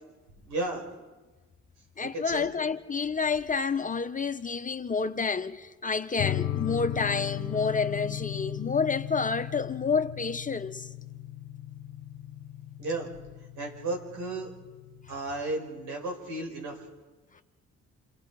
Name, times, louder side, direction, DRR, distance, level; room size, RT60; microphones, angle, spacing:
voice 1, 0.4-0.8 2.0-2.5 12.8-13.1 13.6-14.5 15.1-16.8, right 2 dB, 80° right, 5.5 m, -33 dB
voice 2, 2.0-10.9, left 5 dB, 25° left, 0.9 m, -29 dB
sound 1, 6.2-15.2, left 12 dB, 65° left, 1.0 m, -37 dB
28.0 x 24.0 x 4.8 m
cardioid pair, 90°, 30 cm